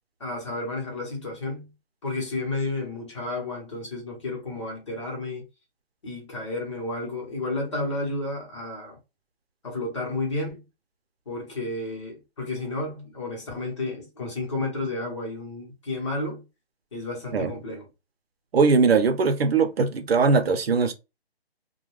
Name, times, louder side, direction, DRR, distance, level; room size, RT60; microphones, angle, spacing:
voice 1, 0.2-1.7 2.0-5.5 6.0-9.0 9.6-10.6 11.3-16.4 16.9-17.8, left 2 dB, 30° left, 0.9 m, -31 dB
voice 2, 18.5-20.9, right 4 dB, 70° right, 0.7 m, -20 dB
2.3 x 2.2 x 3.1 m
hypercardioid pair, 170°, 31 cm